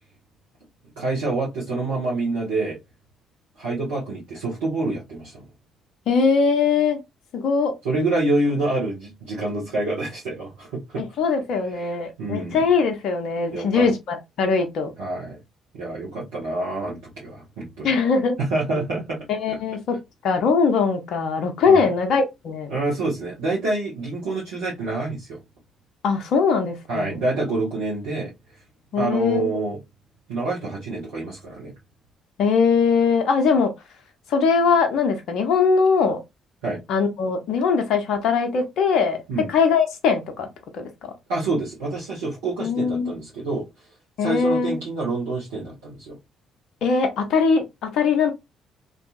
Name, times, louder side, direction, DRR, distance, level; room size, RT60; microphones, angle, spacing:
voice 1, 1.0-2.8 3.6-5.5 7.8-11.0 11.7-12.6 13.5-13.9 15.0-15.4 15.7-17.9 18.4-19.2 21.6-21.9 22.7-25.4 26.9-28.3 29.0-29.8 30.3-31.7 36.6-36.8 39.3-39.5 41.3-43.6 44.2-46.2, right 2 dB, 75° right, 1.0 m, -27 dB
voice 2, 6.1-7.0 7.3-7.7 11.2-14.9 17.8-18.3 19.3-20.0 20.2-22.7 26.0-27.2 28.9-29.5 32.4-33.7 34.3-36.2 36.9-39.2 39.5-40.5 40.7-41.1 42.6-43.1 44.2-44.8 46.8-48.3, left 5 dB, 60° left, 0.6 m, -21 dB
2.6 x 2.5 x 2.3 m
figure-of-eight pair, 45°, 0 cm